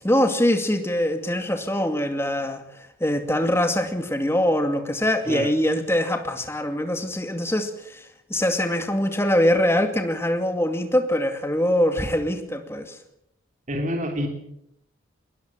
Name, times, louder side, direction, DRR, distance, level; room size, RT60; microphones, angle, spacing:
voice 1, 0.0-2.6 3.0-13.0, left 1 dB, 10° left, 6 dB, 2.3 m, -23 dB
voice 2, 13.7-14.3, equal, 35° right, 3 dB, 3.5 m, -27 dB
22.0 x 20.0 x 7.5 m, 0.79 s
head